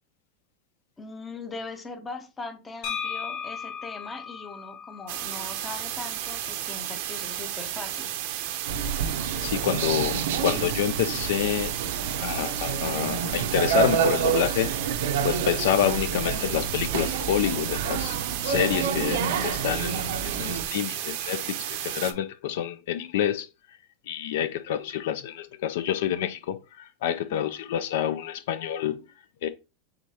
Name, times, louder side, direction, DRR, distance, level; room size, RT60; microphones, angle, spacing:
voice 1, 1.0-8.1 27.2-27.5, left 3 dB, 10° left, 0.6 m, -40 dB
sound 1, 2.8-6.6, left 7 dB, 50° left, 1.0 m, -37 dB
sound 2, 5.1-22.1, right 12 dB, 55° right, 0.6 m, -33 dB
sound 3, 8.7-20.7, right 7 dB, 90° right, 0.7 m, -29 dB
voice 2, 9.4-11.7 12.2-14.8 15.2-18.2 18.4-23.5 24.1-29.0 29.4-29.5, left 10 dB, 70° left, 0.4 m, -28 dB
5.0 x 3.6 x 2.8 m
supercardioid pair, 175°, 0 cm